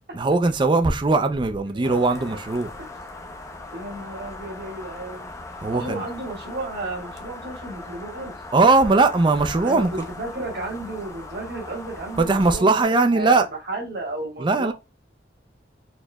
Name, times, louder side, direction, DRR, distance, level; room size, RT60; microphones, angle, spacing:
voice 1, 0.1-2.7 5.6-6.0 8.5-9.9 12.2-13.5 14.4-14.7, right 3 dB, 25° right, 0.4 m, -19 dB
voice 2, 1.7-2.4 3.7-5.3 5.7-8.3 9.6-12.7 13.1-14.7, right 2 dB, 60° right, 1.4 m, -33 dB
sound 1, 1.8-12.6, left 2 dB, 15° left, 0.6 m, -39 dB
4.2 x 3.0 x 2.2 m
head